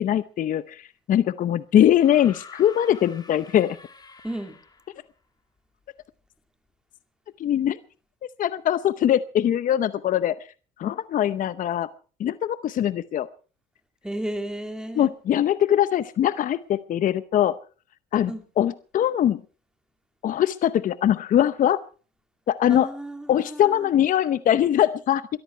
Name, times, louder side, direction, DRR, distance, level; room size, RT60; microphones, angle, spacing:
voice 1, 0.0-3.8 7.4-7.8 8.4-10.3 10.8-11.9 12.2-13.3 15.0-17.6 18.1-18.3 18.6-19.4 20.2-21.8 22.5-22.9 23.3-25.3, left 11 dB, 50° left, 15 dB, 0.8 m, -22 dB
sound 1, 1.9-5.0 6.3-6.4, left 4 dB, 25° left, 2.8 m, -47 dB
voice 2, 4.2-4.6 14.0-15.1 18.3-18.4 22.7-23.9, right 1 dB, 5° right, 7 dB, 2.7 m, -33 dB
22.5 x 13.5 x 4.5 m, 0.38 s
cardioid pair, 110°, 17 cm